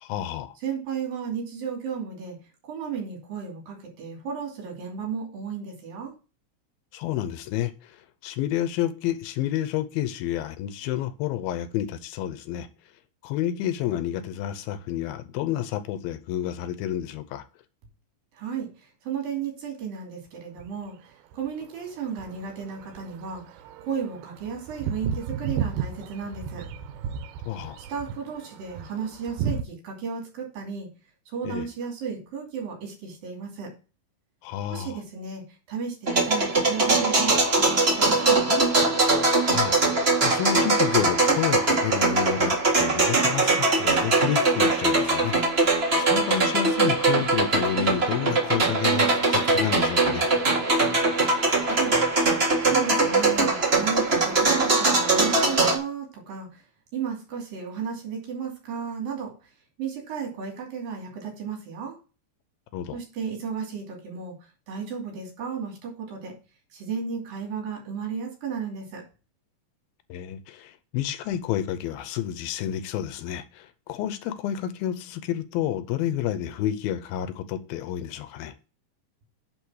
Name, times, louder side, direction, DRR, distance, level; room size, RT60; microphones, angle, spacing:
voice 1, 0.0-0.6 6.9-7.7 8.2-12.7 13.2-17.4 27.5-27.8 31.4-31.7 34.4-35.0 39.5-42.5 42.8-50.3 62.7-63.0 70.1-78.5, left 11 dB, 85° left, 2.5 m, -30 dB
voice 2, 0.6-2.4 2.7-6.1 18.3-23.4 23.8-26.7 27.9-30.9 31.3-33.7 34.7-35.4 35.7-38.7 51.6-51.9 52.6-56.6 56.9-59.3 59.8-62.0 62.9-64.3 64.7-66.3 66.7-69.0, right 6 dB, 70° right, 4.4 m, -34 dB
sound 1, 20.6-20.9 21.3-29.6, right 7 dB, 90° right, 2.6 m, -34 dB
sound 2, 36.1-55.8, right 3 dB, 45° right, 0.8 m, -22 dB
10.0 x 4.2 x 6.3 m
omnidirectional pair, 4.3 m